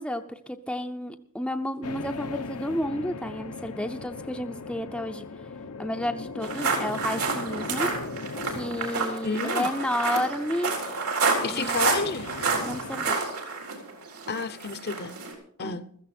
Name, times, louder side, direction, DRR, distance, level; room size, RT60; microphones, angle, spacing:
voice 1, 0.0-5.2 5.8-7.9 8.5-10.8 11.5-11.9 12.6-13.2 15.6-15.8, left 1 dB, 5° left, 6 dB, 0.6 m, -31 dB
sound 1, 1.8-13.1, left 4 dB, 85° left, 1.0 m, -39 dB
sound 2, 6.4-15.3, right 4 dB, 85° right, 3.9 m, -29 dB
voice 2, 9.2-9.7 11.4-12.3 14.3-15.2 15.6-15.9, left 4 dB, 45° left, 14 dB, 0.8 m, -30 dB
15.0 x 14.0 x 4.4 m, 0.62 s
head